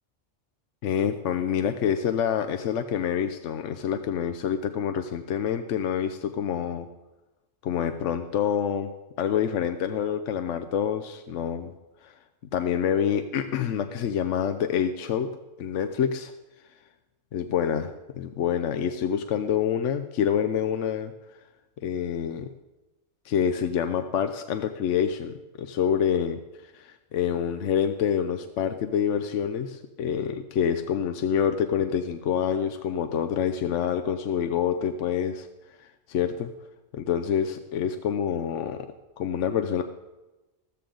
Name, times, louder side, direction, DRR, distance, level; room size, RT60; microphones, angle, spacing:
voice 1, 0.8-6.9 7.6-8.9 9.2-11.7 12.0-12.1 12.5-16.3 17.3-21.1 21.8-22.5 23.2-26.4 26.7-35.5 35.8-36.5 36.9-38.9 39.2-39.8, left 8 dB, 75° left, 8 dB, 1.0 m, -27 dB
14.0 x 13.5 x 3.8 m, 1.1 s
omnidirectional pair, 1.3 m